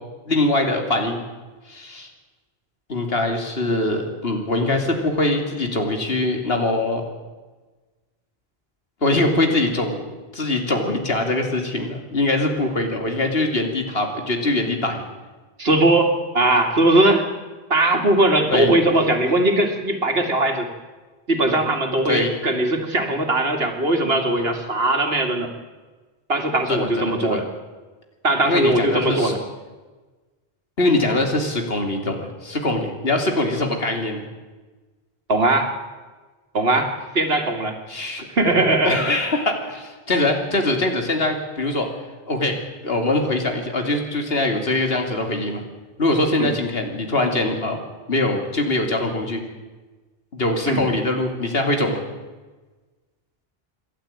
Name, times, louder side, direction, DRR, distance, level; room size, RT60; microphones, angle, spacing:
voice 1, 0.3-1.2 1.7-2.1 2.9-7.0 9.0-10.0 10.3-15.0 18.5-18.7 22.0-22.3 26.7-27.4 28.4-29.3 30.8-34.2 36.8-36.9 37.9-38.3 38.8-41.9 42.3-45.6 46.0-47.8 48.1-49.4 50.3-52.0, left 2 dB, 75° left, 4 dB, 3.0 m, -22 dB
voice 2, 15.6-17.3 17.7-20.7 21.3-25.5 26.3-27.5 28.2-29.4 35.3-35.8 36.5-37.8 38.4-39.0 46.4-46.5 50.7-50.8, right 2 dB, 75° right, 5 dB, 2.6 m, -19 dB
27.0 x 11.5 x 8.7 m, 1.3 s
omnidirectional pair, 1.0 m